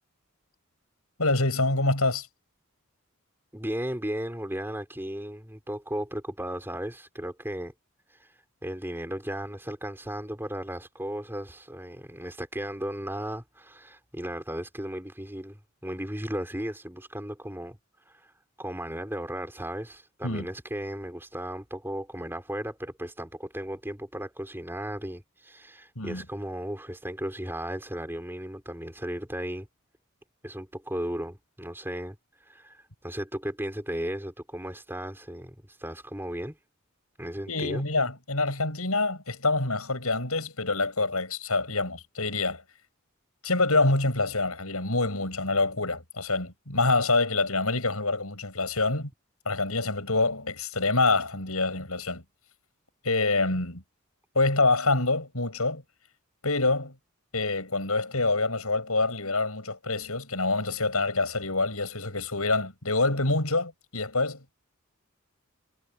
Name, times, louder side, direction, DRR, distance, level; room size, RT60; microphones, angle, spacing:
voice 1, 1.2-2.3 20.2-20.5 26.0-26.2 37.5-42.6 43.4-49.1 49.5-52.2 53.0-53.8 54.3-55.8 56.4-56.9 57.3-64.5, left 3 dB, 80° left, 7.6 m, -26 dB
voice 2, 3.5-7.7 8.2-8.3 8.6-17.8 18.0-18.3 18.6-29.7 30.4-32.2 32.5-36.6 37.2-37.8, right 1 dB, 10° right, 4.8 m, -35 dB
head